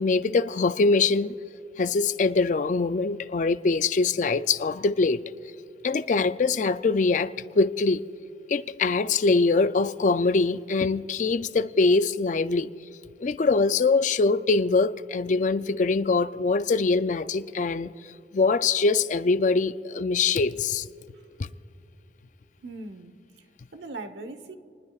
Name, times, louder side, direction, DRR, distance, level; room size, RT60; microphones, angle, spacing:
voice 1, 0.0-1.3 1.8-5.2 5.8-8.0 8.5-12.7 13.2-17.9 18.3-20.9, left 3 dB, 45° left, 0.4 m, -23 dB
voice 2, 22.6-24.6, right 2 dB, 80° right, 1.1 m, -41 dB
28.0 x 20.0 x 2.4 m
head